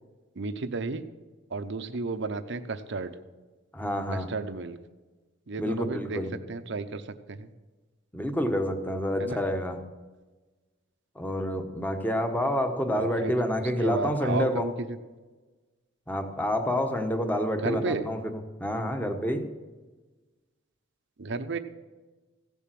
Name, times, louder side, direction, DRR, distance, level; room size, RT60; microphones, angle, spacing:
voice 1, 0.4-1.0 1.5-3.1 4.1-4.8 5.5-6.2 6.5-7.0 7.3-7.5 9.2-9.4 12.9-13.3 13.8-14.7 17.6-18.0 21.2-21.6, right 3 dB, 65° right, 10 dB, 0.8 m, -32 dB
voice 2, 3.7-4.3 5.6-6.4 8.1-9.8 11.1-14.7 16.1-19.5, equal, 10° left, 6 dB, 1.2 m, -28 dB
16.0 x 7.1 x 7.6 m, 1.3 s
head